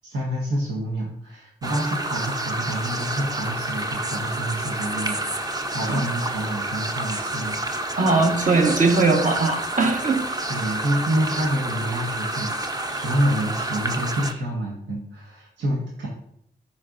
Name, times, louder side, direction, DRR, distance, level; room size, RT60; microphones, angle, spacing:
voice 1, 0.0-7.9 10.5-16.1, right 1 dB, 90° right, -4 dB, 1.3 m, -28 dB
sound 1, 1.6-14.3, right 2 dB, 20° right, 0.7 m, -29 dB
voice 2, 7.9-10.3, right 3 dB, 45° right, 3 dB, 1.2 m, -20 dB
12.0 x 4.4 x 2.6 m, 0.73 s
cardioid pair, 60°, 18 cm